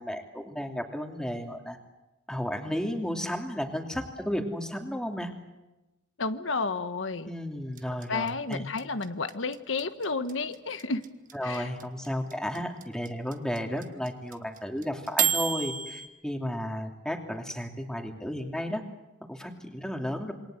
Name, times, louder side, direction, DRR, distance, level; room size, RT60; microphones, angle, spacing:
voice 1, 0.0-1.8 2.3-5.3 7.2-8.6 11.3-18.8 19.3-20.3, equal, 5° left, 3 dB, 2.9 m, -33 dB
voice 2, 6.2-7.3 8.1-11.0 11.4-11.7, left 3 dB, 90° left, 10 dB, 1.3 m, -31 dB
sound 1, 7.8-16.1, right 9 dB, 45° right, 1.6 m, -29 dB
27.5 x 23.5 x 7.9 m, 1.0 s
head